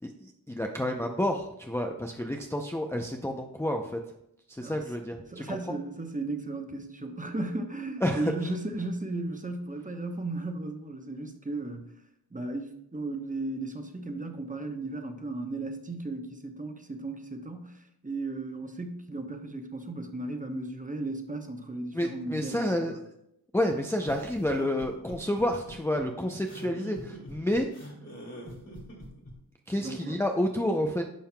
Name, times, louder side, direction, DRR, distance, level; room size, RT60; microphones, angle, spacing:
voice 1, 0.0-4.0 4.5-5.8 8.0-8.5 21.9-23.0 23.5-27.7 29.7-31.0, left 1 dB, 5° left, 2 dB, 0.5 m, -30 dB
voice 2, 5.3-11.9 12.3-23.0 29.8-30.2, right 2 dB, 20° right, 5 dB, 0.8 m, -35 dB
sound 1, 24.0-29.3, equal, 40° left, 2.0 m, -44 dB
10.0 x 5.5 x 2.2 m, 0.78 s
wide cardioid pair, 75°, 39 cm